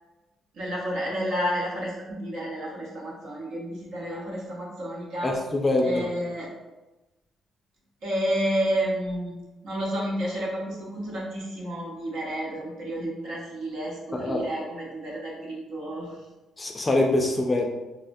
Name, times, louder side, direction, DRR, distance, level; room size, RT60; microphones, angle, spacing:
voice 1, 0.5-5.3 5.8-6.5 8.0-9.4 9.6-16.1, equal, 85° right, -4 dB, 0.9 m, -30 dB
voice 2, 5.2-6.1 14.1-14.4 16.6-17.7, left 2 dB, 25° left, 2 dB, 0.4 m, -24 dB
3.5 x 2.1 x 2.5 m, 1.1 s
cardioid pair, 90°, 0 cm